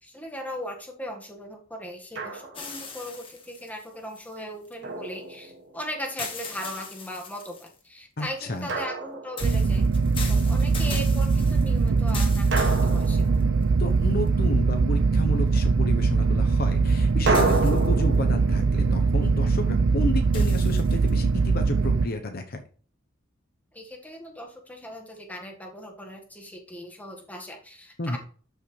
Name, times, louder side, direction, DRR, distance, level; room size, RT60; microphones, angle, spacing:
voice 1, 0.0-9.8 10.3-13.2 23.7-28.2, equal, 10° left, 1 dB, 1.6 m, -38 dB
Drum, 2.2-2.8 4.8-5.9 8.7-9.9 12.5-14.2 17.3-20.2, right 2 dB, 60° right, 1.4 m, -30 dB
sound 1, 2.5-4.7 6.2-7.8 9.4-13.6 14.3-14.4 17.3-18.2 20.3-21.1, left 5 dB, 25° left, 1.6 m, -40 dB
voice 2, 8.2-8.7 13.8-22.6 28.0-28.2, left 1 dB, 50° left, 5 dB, 0.9 m, -32 dB
sound 2, 9.4-22.1, right 4 dB, 80° right, 0.6 m, -22 dB
12.5 x 5.6 x 3.3 m, 0.42 s
head